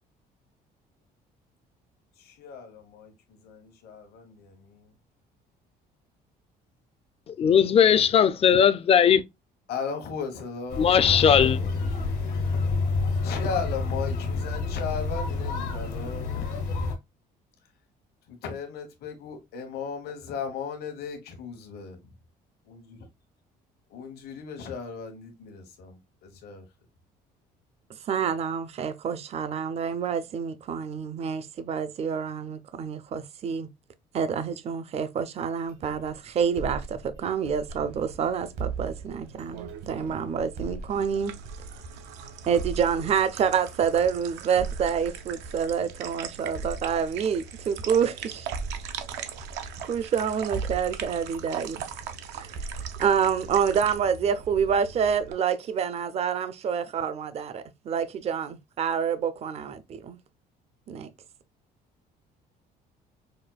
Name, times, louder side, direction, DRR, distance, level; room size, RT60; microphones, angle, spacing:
voice 1, 2.2-4.9 9.7-11.6 11.9-12.1 13.2-16.8 18.3-21.9 22.7-23.0 23.9-26.6, left 5 dB, 70° left, 1.0 m, -36 dB
voice 2, 7.3-9.2 10.8-11.6, left 8 dB, 35° left, 0.4 m, -19 dB
sound 1, 10.7-17.0, left 4 dB, 85° left, 1.3 m, -28 dB
voice 3, 28.1-33.7 34.1-41.4 42.5-48.5 49.9-51.8 52.3-52.6 53.0-60.2 60.9-61.1, right 7 dB, 40° right, 0.4 m, -27 dB
sound 2, 35.7-38.1 38.6-42.1 42.6-46.1 46.5-50.2 50.5-54.6, right 4 dB, 70° right, 1.1 m, -39 dB
sound 3, 37.7-55.3, right 7 dB, 90° right, 0.5 m, -41 dB
5.0 x 2.2 x 2.3 m
cardioid pair, 110°, 17 cm